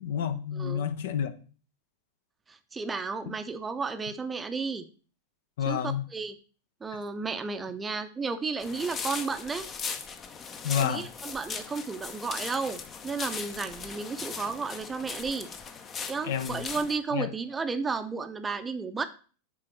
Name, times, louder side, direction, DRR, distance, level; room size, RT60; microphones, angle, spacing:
voice 1, 0.0-1.3 3.3-3.4 5.6-6.0 10.6-11.1 16.2-16.6 17.1-17.3, left 8 dB, 55° left, 0.8 m, -29 dB
voice 2, 0.5-0.8 2.5-4.9 5.7-6.4 6.8-9.7 10.8-15.5 16.1-19.0, right 4 dB, 15° right, 0.7 m, -33 dB
sound 1, 8.6-17.0, left 5 dB, 25° left, 0.8 m, -39 dB
7.5 x 3.9 x 6.3 m
figure-of-eight pair, 90°, 0 cm